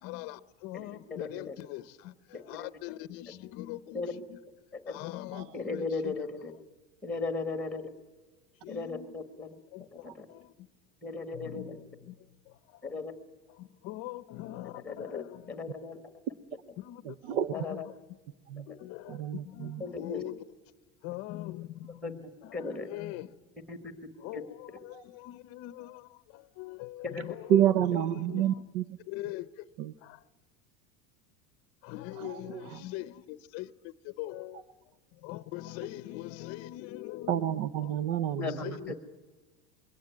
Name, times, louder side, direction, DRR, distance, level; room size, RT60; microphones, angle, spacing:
voice 1, 0.0-4.4 4.9-6.1 8.6-9.1 9.7-10.7 11.3-12.2 12.5-12.9 13.5-15.7 16.8-17.8 18.7-20.4 21.0-23.4 24.2-27.6 28.1-28.6 29.1-29.7 30.0-30.2 31.8-37.4 37.8-38.0 38.4-39.0, left 16 dB, 40° left, 0.7 m, -42 dB
voice 2, 1.2-1.5 2.3-2.7 3.9-4.1 4.7-5.0 5.5-6.5 7.0-7.9 8.7-9.5 9.9-10.3 11.0-11.8 12.8-13.1 14.8-16.0 17.5-17.9 19.8-20.2 22.0-22.9 23.7-23.9 24.3-24.4 27.0-27.3 38.4-39.0, left 3 dB, 5° left, 1.3 m, -37 dB
voice 3, 17.0-17.5 18.5-18.7 19.1-19.8 24.9-25.0 27.2-27.3 27.5-28.8 29.8-29.9 32.2-32.8 37.3-39.0, right 10 dB, 80° right, 0.9 m, -29 dB
22.5 x 17.5 x 9.3 m
cardioid pair, 175°, 36 cm